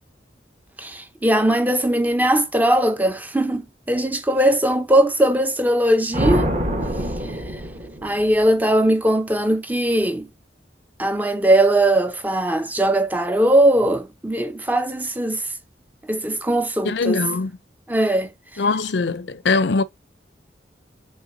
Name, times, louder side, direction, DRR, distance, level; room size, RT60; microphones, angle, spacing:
voice 1, 0.8-6.5 8.0-10.3 11.0-15.5 16.1-17.2 17.9-18.3, right 1 dB, 10° right, 0.5 m, -19 dB
sound 1, 6.1-8.4, equal, 35° right, 1.3 m, -24 dB
voice 2, 16.8-17.6 18.6-19.8, left 3 dB, 75° left, 0.5 m, -21 dB
5.5 x 3.6 x 2.6 m
head